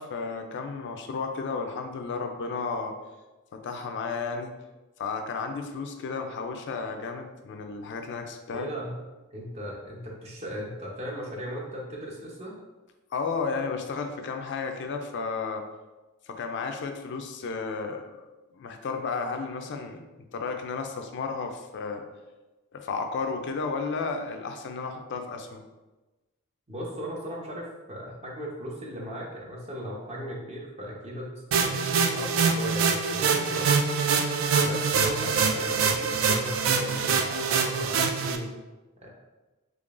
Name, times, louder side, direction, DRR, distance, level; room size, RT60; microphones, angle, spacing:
voice 1, 0.0-2.9 3.5-4.6 5.0-8.7 13.1-15.6 16.3-18.2 18.5-22.1 22.7-25.6, left 4 dB, 55° left, 5 dB, 0.4 m, -33 dB
voice 2, 8.5-9.0 9.3-12.5 26.7-31.3 31.6-33.9 34.6-38.6 39.0-39.1, equal, 30° right, -2 dB, 0.7 m, -37 dB
sound 1, 31.5-38.4, right 5 dB, 65° right, 0.3 m, -24 dB
3.7 x 3.3 x 2.4 m, 1.1 s
head